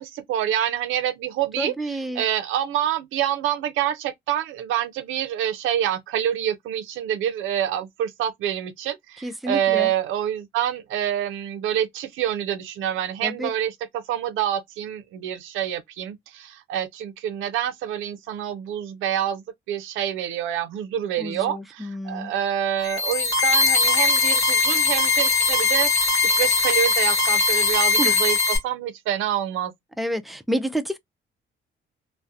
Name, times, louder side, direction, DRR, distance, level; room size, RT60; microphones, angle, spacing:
voice 1, 0.0-29.7, right 10 dB, 90° right, 0.5 m, -27 dB
voice 2, 1.6-2.2 9.2-9.9 13.2-13.5 21.2-22.3 28.0-28.2 30.0-31.0, right 1 dB, ahead, 0.4 m, -29 dB
sound 1, 22.8-28.6, left 4 dB, 15° left, 1.4 m, -20 dB
2.3 x 2.1 x 2.6 m
cardioid pair, 90°, 20 cm